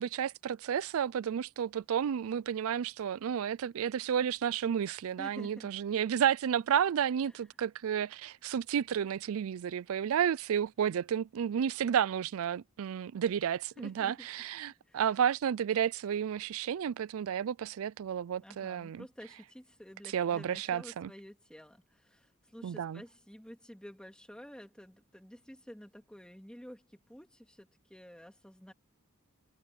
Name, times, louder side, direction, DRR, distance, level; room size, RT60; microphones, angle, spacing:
voice 1, 0.0-19.0 20.1-21.1 22.6-23.0, right 8 dB, 70° right, 0.4 m, -31 dB
voice 2, 5.2-5.7 7.2-7.4 13.8-14.3 14.9-15.0 18.4-28.7, equal, 5° left, 3.0 m, -50 dB
head